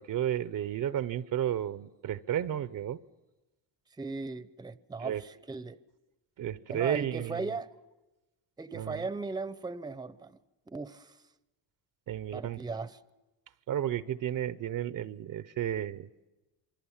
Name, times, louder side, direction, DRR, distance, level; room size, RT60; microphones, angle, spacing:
voice 1, 0.0-3.0 5.0-5.2 6.4-7.4 8.7-9.0 12.1-12.6 13.7-16.1, right 11 dB, 50° right, 0.8 m, -32 dB
voice 2, 4.0-5.8 6.7-7.7 8.6-10.4 10.7-11.1 12.3-13.0, right 3 dB, 10° right, 0.8 m, -37 dB
27.0 x 24.0 x 7.3 m
cardioid pair, 100°, 43 cm